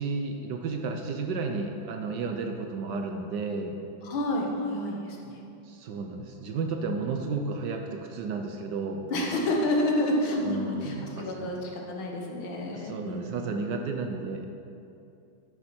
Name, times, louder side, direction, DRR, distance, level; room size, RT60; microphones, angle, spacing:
voice 1, 0.0-3.8 5.7-9.1 10.4-11.5 12.6-14.5, right 4 dB, 65° right, 3 dB, 1.2 m, -32 dB
voice 2, 4.0-5.4 9.1-13.5, left 1 dB, 75° left, 0 dB, 2.0 m, -29 dB
12.0 x 6.8 x 4.4 m, 2.6 s
omnidirectional pair, 2.2 m